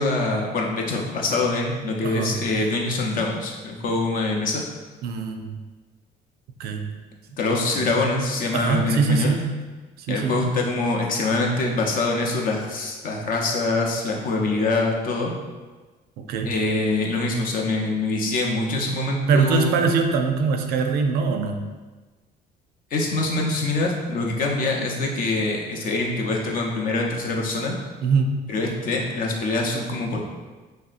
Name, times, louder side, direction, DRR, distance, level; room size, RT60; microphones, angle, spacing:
voice 1, 0.0-4.6 7.4-9.4 10.1-15.3 16.4-19.8 22.9-27.8 28.5-30.2, left 2 dB, 55° left, 0 dB, 0.6 m, -24 dB
voice 2, 2.0-2.4 5.0-5.6 6.6-7.0 8.5-9.5 10.0-10.4 16.2-16.5 19.3-21.7 28.0-28.4, right 4 dB, 70° right, 5 dB, 0.4 m, -23 dB
3.2 x 2.7 x 2.4 m, 1.3 s
cardioid pair, 110°, 17 cm